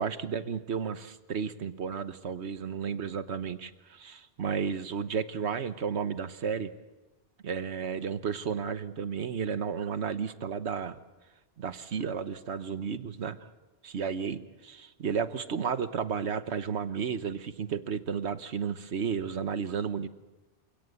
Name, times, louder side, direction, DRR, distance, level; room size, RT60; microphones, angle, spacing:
voice 1, 0.0-6.7 7.4-11.0 11.6-13.5 13.8-20.1, right 6 dB, 70° right, 12 dB, 1.3 m, -33 dB
28.0 x 17.5 x 8.4 m, 1.1 s
omnidirectional pair, 1.2 m